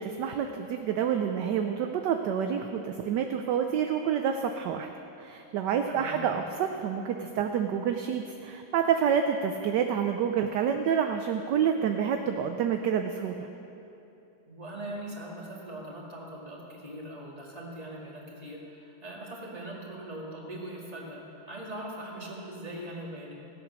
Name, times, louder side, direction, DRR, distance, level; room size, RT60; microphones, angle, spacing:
voice 1, 0.0-4.9 5.2-13.5, right 8 dB, 70° right, 5 dB, 1.1 m, -28 dB
voice 2, 5.9-6.2 14.5-23.3, right 1 dB, 20° right, -4 dB, 2.1 m, -41 dB
16.5 x 8.2 x 6.1 m, 2.9 s
omnidirectional pair, 2.3 m